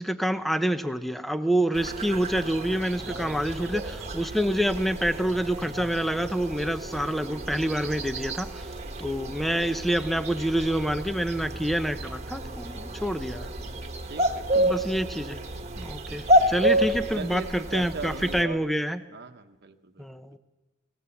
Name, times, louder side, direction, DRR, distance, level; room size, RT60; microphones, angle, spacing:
voice 1, 0.0-8.6 9.0-13.5 14.5-15.4 15.8-19.0 20.0-20.4, right 1 dB, ahead, 10 dB, 0.7 m, -27 dB
sound 1, 1.7-18.4, right 1 dB, 30° right, 1.4 m, -30 dB
voice 2, 14.0-15.0 17.1-18.6 19.1-20.0, right 4 dB, 50° right, 7 dB, 1.1 m, -39 dB
23.5 x 18.0 x 7.1 m, 1.2 s
head